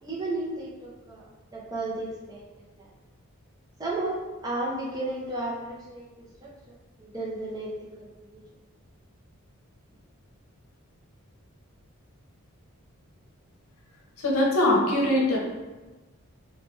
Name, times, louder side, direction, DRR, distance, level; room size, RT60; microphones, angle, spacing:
voice 1, 0.0-1.2 1.5-2.4 2.8-2.9 3.8-6.5 7.0-8.4, right 2 dB, 15° right, -5 dB, 0.4 m, -33 dB
voice 2, 14.2-15.4, left 1 dB, 80° left, -2 dB, 0.7 m, -22 dB
3.0 x 2.2 x 3.0 m, 1.2 s
head